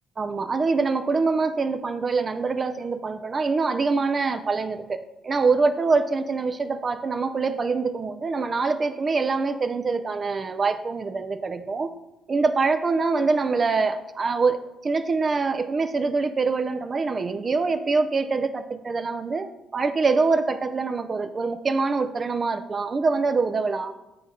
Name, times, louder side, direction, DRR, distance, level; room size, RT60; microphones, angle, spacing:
voice 1, 0.2-11.9 12.3-19.5 19.7-23.9, right 4 dB, 35° right, 10 dB, 0.4 m, -24 dB
8.4 x 3.6 x 4.1 m, 0.95 s
cardioid pair, 90°, 0 cm